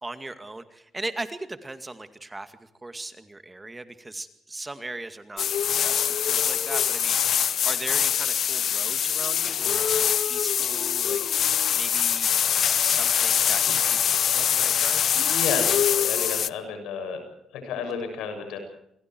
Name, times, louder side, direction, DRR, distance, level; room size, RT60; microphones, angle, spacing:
voice 1, 0.0-5.5 5.8-15.1, right 2 dB, 20° right, 10 dB, 2.2 m, -38 dB
sound 1, 5.4-16.5, left 9 dB, 65° left, 0.8 m, -23 dB
voice 2, 15.3-17.2 17.5-18.6, left 5 dB, 90° left, 6 dB, 7.5 m, -32 dB
28.5 x 23.0 x 4.7 m, 0.74 s
cardioid pair, 90°, 0 cm